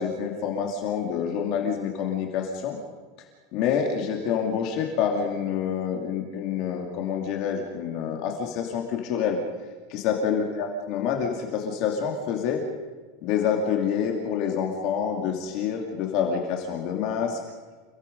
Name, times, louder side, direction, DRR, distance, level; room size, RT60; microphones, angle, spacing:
voice 1, 0.0-2.8 3.5-9.4 9.9-12.6 13.2-17.4, left 7 dB, 40° left, 2 dB, 2.5 m, -27 dB
29.5 x 18.0 x 5.4 m, 1.4 s
supercardioid pair, 175°, 0 cm